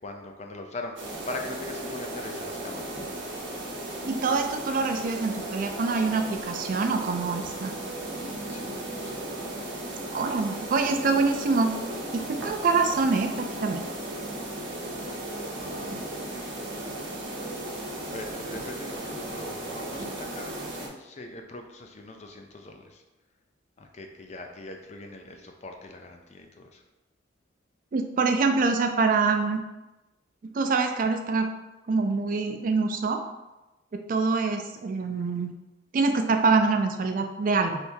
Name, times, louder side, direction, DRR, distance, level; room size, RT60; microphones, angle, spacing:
voice 1, 0.0-1.0 1.3-3.1 8.5-8.7 9.0-9.9 15.6-16.3 17.9-23.0 23.8-26.8, left 2 dB, 35° left, 3 dB, 0.4 m, -42 dB
sound 1, 1.0-20.9, right 1 dB, 70° right, 0.9 m, -36 dB
voice 2, 4.1-7.7 10.1-11.7 12.1-13.8 27.9-29.6 30.5-31.5 31.9-33.2 33.9-35.5 35.9-37.8, right 4 dB, 45° right, 5 dB, 0.3 m, -25 dB
3.4 x 2.7 x 4.4 m, 1.0 s
head